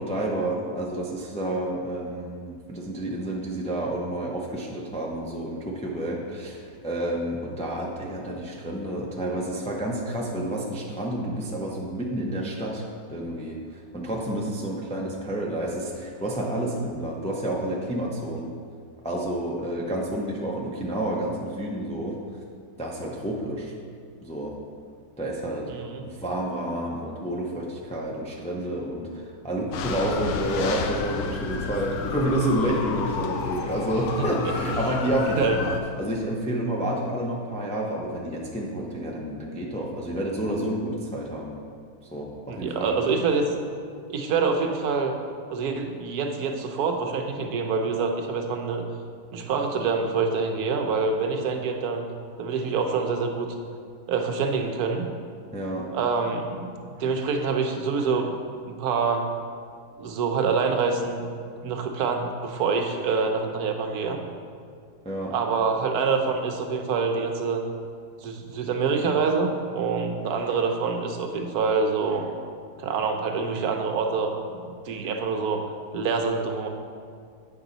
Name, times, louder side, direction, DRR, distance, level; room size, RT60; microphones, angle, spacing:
voice 1, 0.0-18.5 19.0-22.2 22.8-23.7 24.2-24.6 25.2-25.7 26.0-41.5 42.0-43.0 55.5-55.9 65.0-65.3, right 1 dB, 10° left, -2 dB, 0.3 m, -29 dB
voice 2, 25.7-26.0 34.1-34.2 35.4-35.6 42.5-43.4 44.1-45.2 45.5-48.8 49.3-52.0 52.4-53.5 54.1-55.1 55.9-58.3 58.7-59.3 60.0-64.2 65.2-67.6 68.2-72.3 72.8-75.6 75.9-76.7, right 5 dB, 80° right, 4 dB, 1.2 m, -26 dB
sound 1, 29.7-35.8, left 6 dB, 75° left, 1.1 m, -31 dB
8.7 x 5.5 x 3.9 m, 2.2 s
omnidirectional pair, 1.6 m